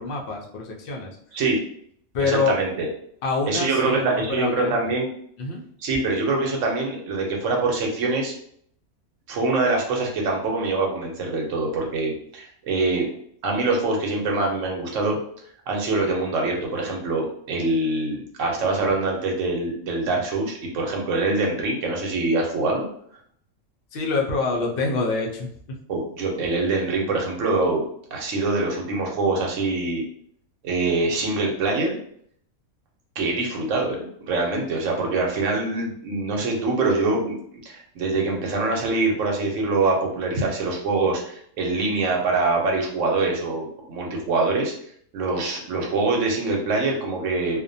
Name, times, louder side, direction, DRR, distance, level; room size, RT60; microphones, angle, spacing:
voice 1, 0.0-1.2 2.1-2.5 3.2-4.9 5.4-5.6 23.9-25.5, left 4 dB, 65° left, -1 dB, 0.5 m, -26 dB
voice 2, 2.2-2.9 3.5-5.1 5.8-8.3 9.3-13.1 13.4-15.2 15.7-22.8 25.9-27.8 28.1-30.0 30.6-32.0 33.2-37.4 37.7-44.7 45.1-47.6, right 3 dB, 65° right, 0 dB, 1.0 m, -24 dB
2.5 x 2.1 x 2.6 m, 0.64 s
omnidirectional pair, 1.5 m